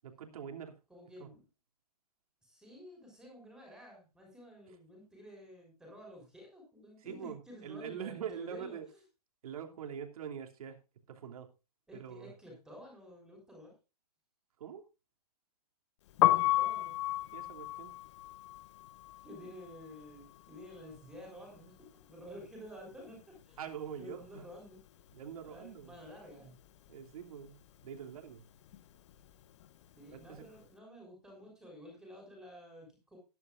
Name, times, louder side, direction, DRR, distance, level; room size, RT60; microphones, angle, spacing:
voice 1, 0.0-0.8 1.2-1.3 4.7-4.8 7.0-8.9 9.4-10.8 11.1-11.5 11.9-12.3 14.6-14.8 17.3-17.9 23.6-24.4 25.1-26.0 26.9-28.4 30.1-30.4, right 8 dB, 60° right, 4 dB, 3.0 m, -44 dB
voice 2, 0.9-1.4 2.4-9.0 11.9-13.7 16.2-17.0 19.2-23.6 24.0-24.8 25.4-26.5 29.9-33.2, equal, 5° right, -1 dB, 6.3 m, -51 dB
Piano, 16.1-22.0 22.3-23.9 24.1-30.6, left 15 dB, 45° left, 1.1 m, -34 dB
18.5 x 11.0 x 2.6 m, 0.29 s
hypercardioid pair, 150°, 21 cm